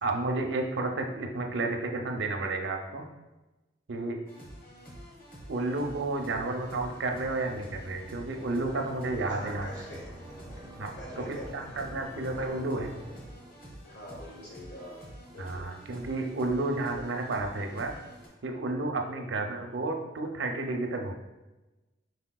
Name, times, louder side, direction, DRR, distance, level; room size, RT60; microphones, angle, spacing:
voice 1, 0.0-3.1 3.9-4.3 5.5-9.7 10.8-12.9 15.4-17.9 18.4-21.1, right 2 dB, 75° right, 3 dB, 0.6 m, -31 dB
sound 1, 4.3-18.3, equal, 50° left, 1.2 m, -48 dB
sound 2, 5.3-13.9, right 1 dB, 10° right, 0.4 m, -48 dB
voice 2, 9.2-10.6 10.9-11.7 13.9-15.7, left 1 dB, 70° left, -4 dB, 1.5 m, -45 dB
5.0 x 4.0 x 2.3 m, 1.1 s
head